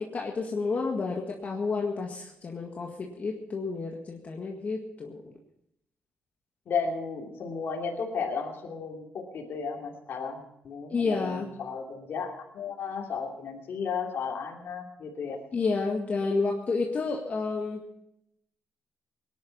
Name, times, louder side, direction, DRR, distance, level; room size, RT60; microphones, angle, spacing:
voice 1, 0.1-5.3 10.9-11.5 15.5-17.8, left 4 dB, 40° left, 0 dB, 1.9 m, -30 dB
voice 2, 6.7-15.4, left 5 dB, 65° left, -1 dB, 2.8 m, -34 dB
19.0 x 11.0 x 5.6 m, 0.81 s
cardioid pair, 95°, 4 cm